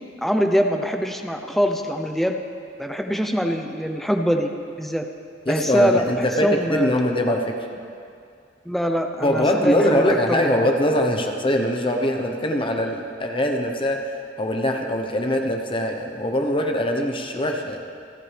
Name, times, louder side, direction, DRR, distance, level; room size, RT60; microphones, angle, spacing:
voice 1, 0.2-2.4 2.8-4.5 4.8-5.1 5.5-6.9 8.6-10.7, equal, ahead, 4 dB, 0.8 m, -23 dB
voice 2, 5.5-7.7 9.2-17.9, left 1 dB, 30° left, 3 dB, 1.1 m, -22 dB
28.5 x 12.0 x 3.5 m, 2.3 s
head